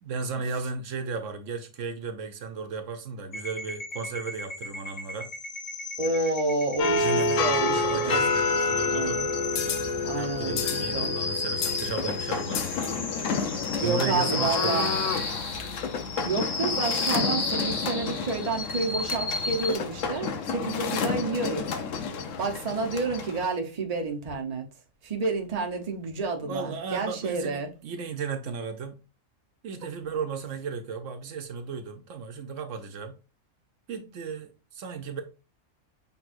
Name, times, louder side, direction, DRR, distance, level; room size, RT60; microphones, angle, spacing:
voice 1, 0.0-5.3 7.0-9.2 10.2-13.1 13.8-15.3 26.4-29.0 29.6-33.2 33.9-35.2, right 5 dB, 75° right, 1.1 m, -35 dB
sound 1, 3.3-19.7, left 3 dB, 40° left, 0.4 m, -34 dB
voice 2, 6.0-8.3 8.9-9.3 10.0-11.1 13.8-14.9 16.2-21.7 22.4-24.7 25.0-27.7, right 3 dB, 35° right, 0.8 m, -30 dB
sound 2, 6.8-23.5, left 4 dB, 75° left, 1.1 m, -29 dB
6.0 x 3.5 x 2.5 m
omnidirectional pair, 1.3 m